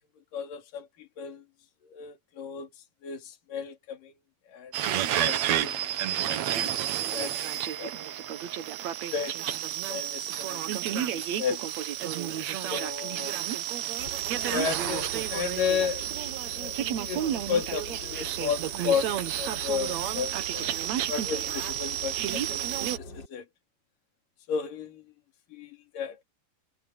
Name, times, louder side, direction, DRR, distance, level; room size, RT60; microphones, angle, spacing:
voice 1, 0.3-1.4 1.8-2.7 3.0-4.1 4.5-5.8 6.2-6.7 7.0-7.4 7.8-8.1 9.0-11.7 12.7-13.3 14.5-16.1 16.5-16.8 17.0-23.5 24.5-25.0 25.5-26.2, left 7 dB, 60° left, 4.4 m, -34 dB
sound 1, 4.7-23.0, right 11 dB, 65° right, 1.8 m, -31 dB
sound 2, 14.0-23.3, left 2 dB, 25° left, 5.7 m, -44 dB
omnidirectional pair, 4.6 m